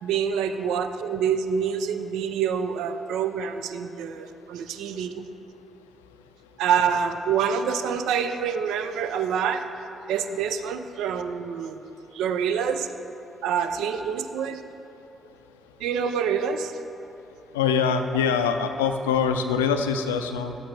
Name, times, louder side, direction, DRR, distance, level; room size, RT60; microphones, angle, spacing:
voice 1, 0.0-5.3 6.6-9.6 10.1-11.8 12.1-12.9 13.4-14.6 15.8-16.7, right 7 dB, 75° right, 9 dB, 0.4 m, -26 dB
voice 2, 17.5-20.6, left 6 dB, 90° left, 7 dB, 0.4 m, -24 dB
11.0 x 7.8 x 3.3 m, 2.9 s
hypercardioid pair, 45°, 0 cm